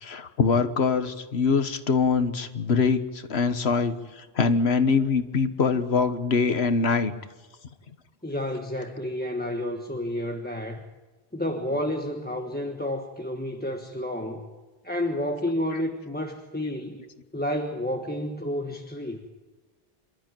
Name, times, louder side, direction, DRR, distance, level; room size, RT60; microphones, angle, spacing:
voice 1, 0.0-4.0 4.4-7.1, left 5 dB, 85° left, 10 dB, 1.5 m, -23 dB
voice 2, 8.2-10.8 11.3-14.5 14.8-17.0 17.3-19.2, left 1 dB, 10° left, 3 dB, 1.3 m, -30 dB
27.5 x 13.0 x 9.1 m, 1.3 s
omnidirectional pair, 1.0 m